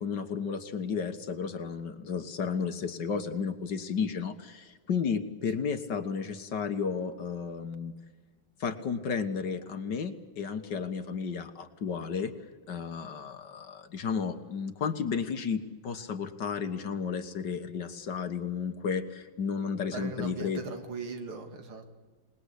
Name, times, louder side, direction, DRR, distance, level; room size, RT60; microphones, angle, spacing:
voice 1, 0.0-7.9 8.6-12.3 12.7-20.6, left 6 dB, 55° left, 8 dB, 2.0 m, -33 dB
voice 2, 19.9-21.9, right 4 dB, 80° right, 6 dB, 3.1 m, -39 dB
27.0 x 20.0 x 8.3 m, 1.4 s
omnidirectional pair, 2.3 m